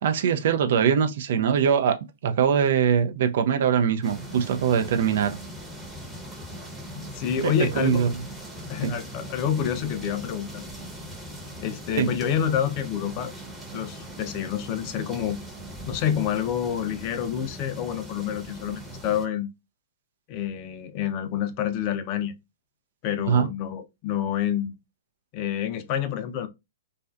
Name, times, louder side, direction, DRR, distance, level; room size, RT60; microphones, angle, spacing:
voice 1, 0.0-2.0 2.2-5.4 7.4-8.2 8.8-8.9 11.9-12.1 23.3-23.5, right 7 dB, 60° right, 0.4 m, -22 dB
sound 1, 4.0-19.3, equal, 5° right, 0.8 m, -40 dB
voice 2, 6.9-8.0 8.7-10.7 11.6-13.3 13.7-15.4 15.9-19.5 20.3-22.3 23.0-24.7 25.3-26.5, left 9 dB, 40° left, 0.5 m, -28 dB
2.4 x 2.1 x 2.3 m
hypercardioid pair, 120°, 0 cm